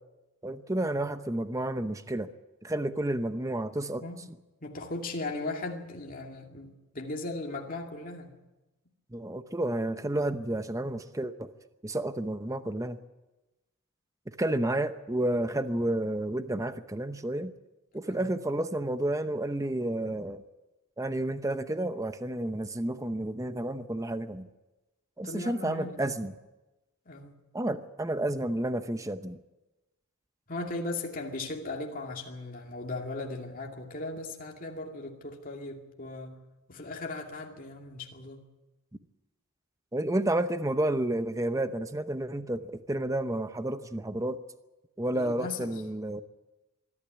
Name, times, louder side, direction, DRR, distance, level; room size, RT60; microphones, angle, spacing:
voice 1, 0.4-2.3 2.6-4.0 9.1-11.5 11.8-13.0 14.3-17.5 17.9-20.4 21.0-24.5 25.2-26.3 27.5-29.4 39.9-44.4 45.0-46.2, right 1 dB, 15° right, 0.8 m, -31 dB
voice 2, 4.0-8.4 17.9-18.3 25.2-26.0 27.1-27.4 30.5-36.4 36.7-38.5 45.1-45.8, left 2 dB, 40° left, 2.4 m, -38 dB
23.5 x 12.5 x 9.7 m
head